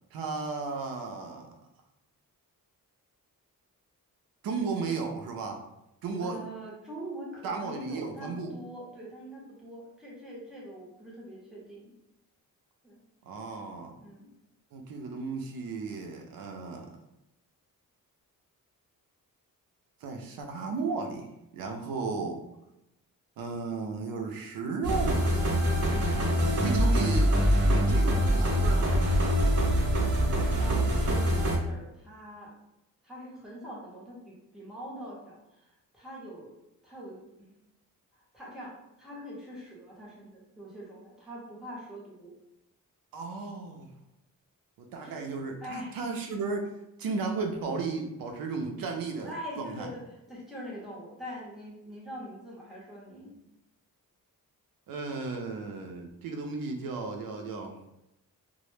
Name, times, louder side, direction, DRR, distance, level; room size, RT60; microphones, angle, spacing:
voice 1, 0.1-1.5 4.4-5.6 6.0-6.4 7.4-8.5 13.2-14.0 14.7-16.9 20.0-22.4 23.4-25.5 26.6-27.3 27.6-29.0 43.1-43.9 44.8-46.7 47.0-49.9 54.9-57.8, right 4 dB, 90° right, 3 dB, 0.5 m, -34 dB
voice 2, 6.2-11.9 12.8-13.0 14.0-14.3 30.6-32.6 33.0-36.5 36.8-37.3 38.1-42.4 45.0-45.2 45.6-46.0 49.2-53.4, equal, ahead, -6 dB, 0.7 m, -43 dB
sound 1, 24.8-31.6, equal, 45° right, 0.6 m, -24 dB
2.0 x 2.0 x 3.1 m, 0.90 s
wide cardioid pair, 150°, 34 cm